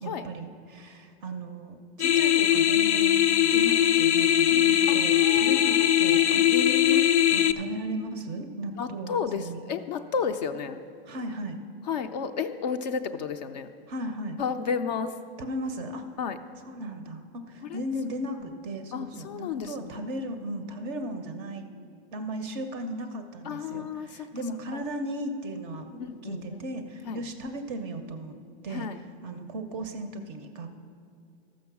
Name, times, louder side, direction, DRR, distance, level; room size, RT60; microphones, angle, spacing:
voice 1, 0.0-6.4 6.8-9.6 11.1-11.6 13.9-14.4 15.4-16.1 16.6-21.7 22.1-28.3 28.6-30.7, right 1 dB, 25° right, 8 dB, 0.5 m, -36 dB
sound 1, 2.0-7.5, left 11 dB, 85° left, 0.6 m, -21 dB
voice 2, 4.9-7.1 8.8-10.8 11.9-13.7 14.4-15.1 16.2-16.4 17.6-17.8 18.9-20.0 23.5-24.3 26.0-26.4 27.1-27.2 28.7-29.0, left 6 dB, 40° left, 9 dB, 0.4 m, -32 dB
13.5 x 6.2 x 5.9 m, 2.4 s
supercardioid pair, 160°, 33 cm